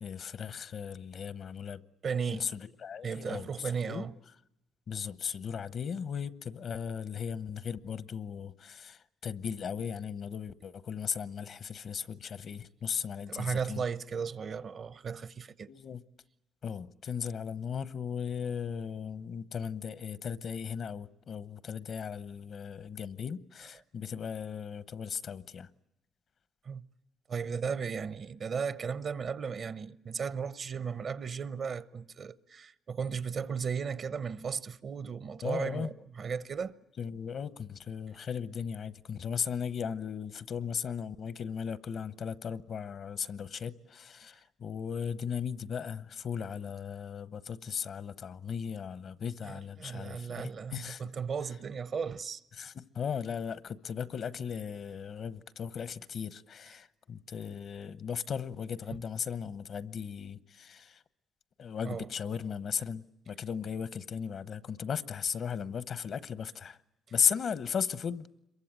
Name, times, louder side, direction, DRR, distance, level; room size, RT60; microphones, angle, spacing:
voice 1, 0.0-1.8 2.3-4.1 4.9-13.8 15.7-16.0 16.6-25.7 35.4-35.9 37.0-51.0 52.6-61.0 61.6-66.8 67.1-68.3, left 7 dB, 60° left, 1.0 m, -37 dB
voice 2, 2.0-2.5 3.0-4.1 13.3-15.7 26.6-26.8 27.3-36.8 49.4-52.4 61.8-62.1, right 6 dB, 50° right, 0.9 m, -35 dB
26.5 x 23.0 x 9.0 m
cardioid pair, 90°, 0 cm